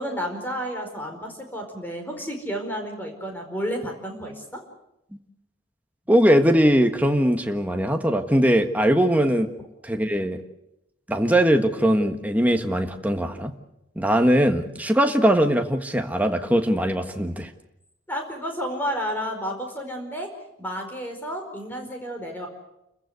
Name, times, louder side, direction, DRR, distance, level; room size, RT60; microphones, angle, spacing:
voice 1, 0.0-4.6 18.1-20.3 20.6-22.5, equal, 10° left, 3 dB, 4.8 m, -31 dB
voice 2, 6.1-9.5 9.8-10.4 11.1-13.5 13.9-17.5, equal, 10° right, 5 dB, 1.5 m, -20 dB
29.5 x 15.0 x 8.2 m, 0.87 s
head